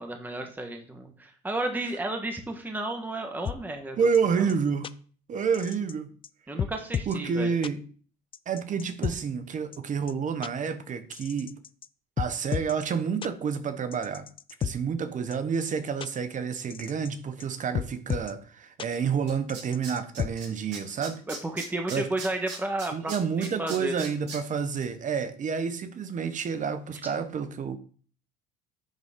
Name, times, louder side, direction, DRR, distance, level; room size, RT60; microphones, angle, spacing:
voice 1, 0.0-4.0 4.3-4.5 6.5-7.5 21.3-24.1 27.0-27.1, right 1 dB, 10° right, 1.2 m, -32 dB
sound 1, 3.4-3.6 4.1-4.2 4.5-4.6 4.8-4.9 5.5-5.9 6.2-6.3 6.6-7.2 7.6-7.7 8.3-9.1 9.7-9.8 10.1-10.2 10.4-10.5 11.1-11.9 12.2-12.7 13.2-13.3 13.9-14.7 15.3-15.4 15.7-15.8 16.0-16.1 16.7-17.1 17.4-17.5 17.7-18.3 18.8-18.9 19.5-20.3, left 8 dB, 25° left, 0.3 m, -32 dB
voice 2, 4.0-4.9 5.3-6.1 7.1-7.8 8.5-11.5 12.2-14.3 14.6-21.2 21.9-22.1 22.9-27.8, right 6 dB, 40° right, 0.9 m, -29 dB
Tools, 18.9-19.0 19.3-20.5 20.7-24.4 24.8-24.9, right 5 dB, 60° right, 3.3 m, -39 dB
10.5 x 3.9 x 3.7 m
supercardioid pair, 95°, 20 cm